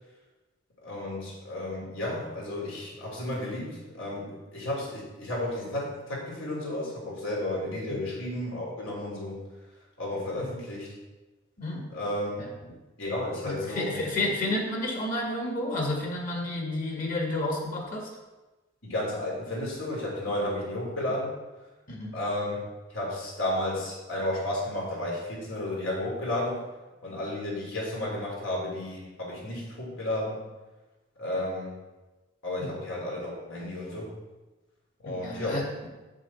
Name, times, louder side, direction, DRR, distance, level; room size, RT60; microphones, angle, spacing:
voice 1, 0.8-9.5 10.0-10.9 11.9-12.3 13.0-14.0 18.8-21.3 22.1-22.6 22.9-26.6 27.0-30.4 31.2-31.8 32.4-34.1 35.0-35.6, left 1 dB, 80° left, -3 dB, 3.4 m, -32 dB
voice 2, 13.4-18.1 21.9-22.1 32.6-32.7 35.0-35.6, left 1 dB, 45° left, -1 dB, 2.0 m, -31 dB
8.0 x 7.4 x 4.3 m, 1.1 s
head